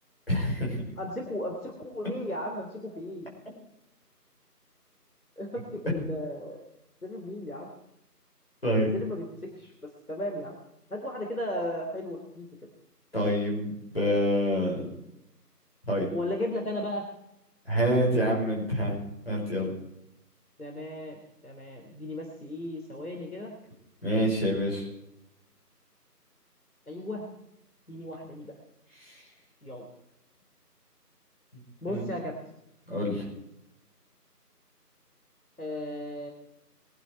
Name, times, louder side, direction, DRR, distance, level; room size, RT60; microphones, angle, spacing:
voice 1, 0.3-0.8 8.6-8.9 13.1-14.9 15.9-16.1 17.7-19.0 19.3-19.7 24.0-24.9 29.0-29.2 31.5-32.0 32.9-33.3, equal, 35° left, -3 dB, 5.4 m, -27 dB
voice 2, 1.0-3.3 5.4-6.6 7.0-7.7 8.9-9.7 10.1-10.6 10.9-12.5 16.1-17.0 20.6-23.5 26.9-27.3 27.9-28.6 29.6-29.8 31.8-32.3 35.6-36.3, left 1 dB, 60° left, 1 dB, 3.4 m, -35 dB
22.5 x 10.5 x 4.7 m, 0.84 s
figure-of-eight pair, 180°, 48 cm